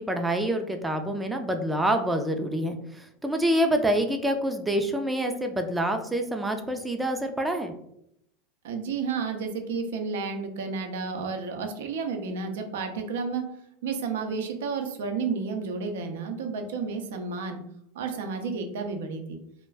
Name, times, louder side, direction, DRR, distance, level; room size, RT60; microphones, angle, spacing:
voice 1, 0.0-7.7, right 1 dB, 10° right, 5 dB, 0.3 m, -27 dB
voice 2, 8.6-13.4 13.8-17.6 17.9-19.4, right 5 dB, 85° right, 5 dB, 0.5 m, -31 dB
2.3 x 2.1 x 3.3 m, 0.75 s
supercardioid pair, 125°, 0 cm